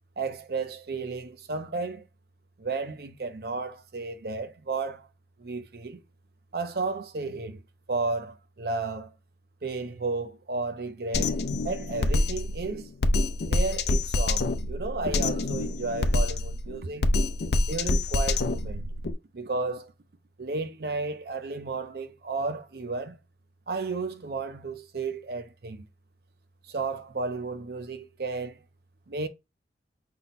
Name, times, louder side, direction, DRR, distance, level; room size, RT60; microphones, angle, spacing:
voice 1, 0.2-2.1 2.6-5.1 5.4-6.0 6.5-7.6 7.9-9.1 9.6-11.4 11.6-12.9 13.4-17.1 17.7-18.9 19.3-19.9 20.4-23.2 23.7-25.9 26.6-28.6 29.1-29.3, right 3 dB, 60° right, 0.6 m, -33 dB
Drum kit, 11.1-19.1, left 2 dB, 70° left, 0.5 m, -26 dB
5.6 x 2.2 x 4.1 m
head